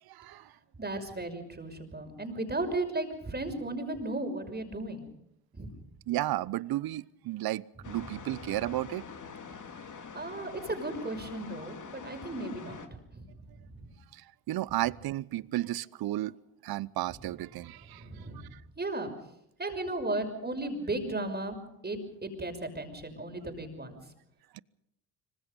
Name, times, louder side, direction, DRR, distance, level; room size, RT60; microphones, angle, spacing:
voice 1, 0.1-0.5 6.1-9.0 14.1-16.3 16.6-18.2 18.5-18.6 24.5-24.6, right 15 dB, 50° right, 0.8 m, -33 dB
voice 2, 0.8-5.0 5.5-5.7 7.9-8.1 9.9-12.8 13.1-13.9 17.9-18.4 18.8-19.1 19.6-21.6 21.8-24.0, right 2 dB, 20° right, 6.0 m, -35 dB
sound 1, 7.8-12.9, left 6 dB, 40° left, 2.8 m, -45 dB
25.5 x 25.0 x 5.4 m
hypercardioid pair, 55°, 47 cm